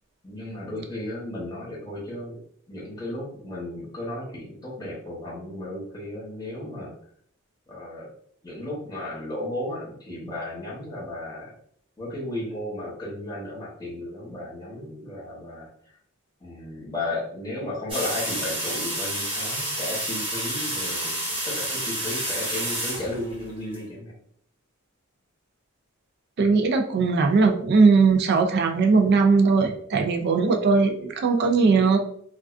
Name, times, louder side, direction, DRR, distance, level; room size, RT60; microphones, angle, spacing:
voice 1, 0.2-2.4 2.7-7.0 7.7-8.1 8.4-11.5 12.0-15.7 16.4-21.2 21.4-24.1, left 1 dB, 20° left, -6 dB, 0.9 m, -34 dB
sound 1, 17.9-23.8, right 1 dB, 25° right, 0.9 m, -29 dB
voice 2, 26.4-32.0, right 4 dB, 50° right, 5 dB, 0.4 m, -19 dB
2.3 x 2.2 x 2.4 m, 0.63 s
head